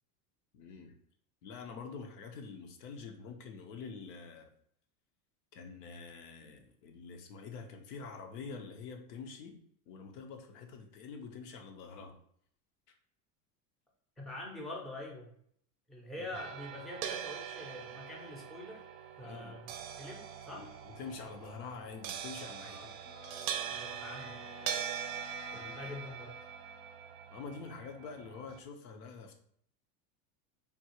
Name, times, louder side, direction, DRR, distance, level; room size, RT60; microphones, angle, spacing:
voice 1, 0.5-1.0 1.4-4.5 5.5-9.6 9.9-12.2 16.2-16.3 19.2-19.6 20.5-22.9 24.6-24.8 25.5-25.9 27.3-29.4, left 5 dB, 75° left, 4 dB, 0.8 m, -46 dB
voice 2, 14.2-15.3 15.9-18.8 19.2-19.7 20.0-20.7 22.6-22.9 23.7-24.4 25.5-26.4, left 1 dB, ahead, -2 dB, 0.5 m, -45 dB
sound 1, 16.3-28.6, right 9 dB, 55° right, 0.5 m, -42 dB
Wind instrument woodwind instrument, 23.0-27.2, left 4 dB, 45° left, 0.5 m, -53 dB
3.5 x 2.3 x 2.9 m, 0.65 s
supercardioid pair, 115°, 48 cm